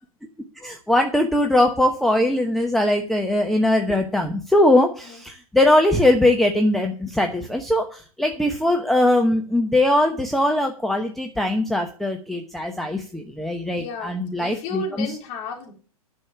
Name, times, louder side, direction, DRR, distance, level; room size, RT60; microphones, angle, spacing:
voice 1, 0.6-15.1, left 1 dB, ahead, 3 dB, 1.0 m, -21 dB
voice 2, 13.8-15.7, left 3 dB, 40° left, 1 dB, 3.9 m, -33 dB
11.0 x 6.4 x 7.2 m, 0.40 s
figure-of-eight pair, 110°, 19 cm